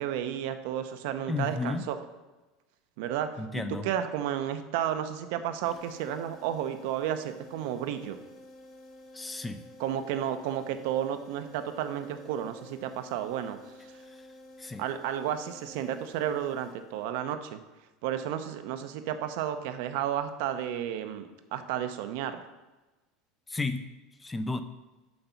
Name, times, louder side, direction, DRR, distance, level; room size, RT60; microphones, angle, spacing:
voice 1, 0.0-2.0 3.0-8.2 9.8-13.6 14.8-17.6 18.0-22.4, right 10 dB, 65° right, 9 dB, 0.7 m, -32 dB
voice 2, 1.3-1.9 3.4-3.9 9.1-9.6 14.1-14.3 14.6-14.8 23.5-23.9 24.2-24.6, left 3 dB, 10° left, 10 dB, 0.4 m, -33 dB
sound 1, 5.6-17.3, left 1 dB, 25° left, 1.2 m, -51 dB
6.5 x 5.7 x 6.8 m, 1.1 s
supercardioid pair, 155°, 0 cm